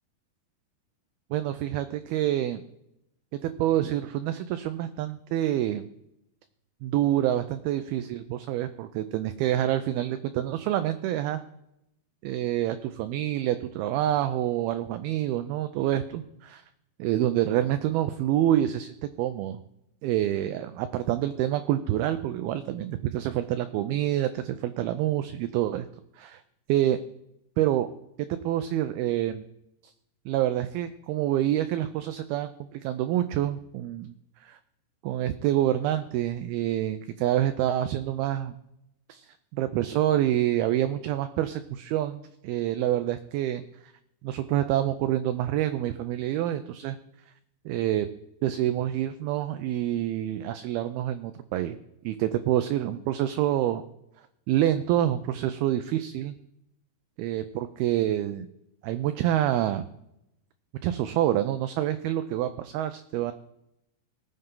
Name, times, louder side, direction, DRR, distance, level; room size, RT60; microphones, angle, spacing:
voice 1, 1.3-2.6 3.4-5.9 6.8-11.4 12.2-16.6 17.0-19.6 20.0-25.9 26.2-26.4 26.7-27.0 27.6-27.9 28.2-29.5 30.3-34.2 34.4-34.6 35.0-38.5 39.1-43.6 44.2-47.0 47.7-48.1 48.4-51.8 52.0-53.8 54.5-56.4 57.2-58.5 58.8-59.9 60.8-63.3, right 12 dB, 80° right, 10 dB, 2.3 m, -27 dB
19.0 x 7.9 x 3.8 m, 0.83 s
omnidirectional pair, 4.8 m